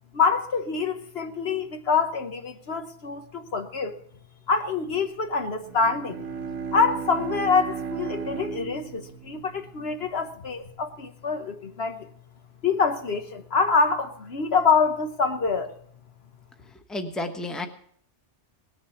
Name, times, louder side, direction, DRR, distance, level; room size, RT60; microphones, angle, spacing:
voice 1, 0.1-4.0 4.5-6.2 6.7-12.1 12.6-15.7, left 5 dB, 60° left, 7 dB, 1.2 m, -25 dB
Bowed string instrument, 5.6-10.2, right 6 dB, 85° right, 1.7 m, -35 dB
voice 2, 16.9-17.7, left 2 dB, ahead, 6 dB, 1.0 m, -31 dB
18.5 x 7.3 x 6.9 m, 0.63 s
omnidirectional pair, 1.2 m